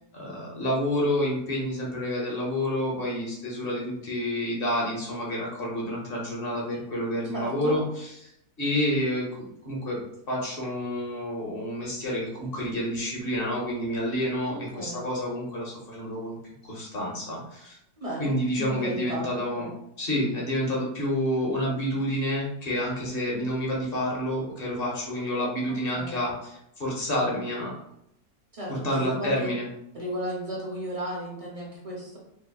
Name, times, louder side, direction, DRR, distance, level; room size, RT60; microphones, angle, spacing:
voice 1, 0.1-8.1 8.6-10.0 10.3-16.4 16.6-17.8 18.2-19.7 20.0-27.8 28.7-29.7, equal, 45° left, -3 dB, 0.8 m, -29 dB
voice 2, 7.3-7.8 14.5-15.0 18.0-19.8 25.7-26.2 28.5-29.5 29.9-32.2, equal, 55° right, -4 dB, 0.3 m, -35 dB
3.8 x 3.0 x 2.3 m, 0.79 s
omnidirectional pair, 1.8 m